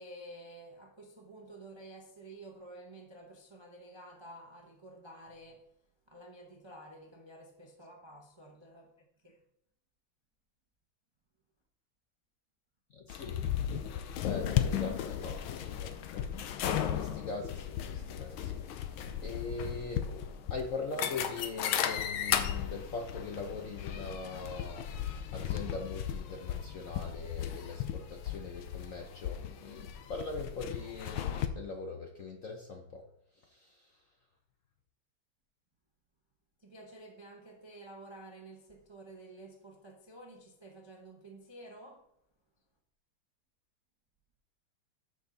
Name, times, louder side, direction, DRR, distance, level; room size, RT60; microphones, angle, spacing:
voice 1, 0.0-5.7 6.1-9.4 36.6-42.0, right 1 dB, 40° right, 0.4 m, -51 dB
voice 2, 12.9-13.4 13.9-16.5 16.9-33.0 33.4-33.9, left 3 dB, 60° left, 0.8 m, -42 dB
sound 1, 13.1-31.5, left 10 dB, 75° left, 1.5 m, -35 dB
12.5 x 5.3 x 3.9 m
omnidirectional pair, 2.3 m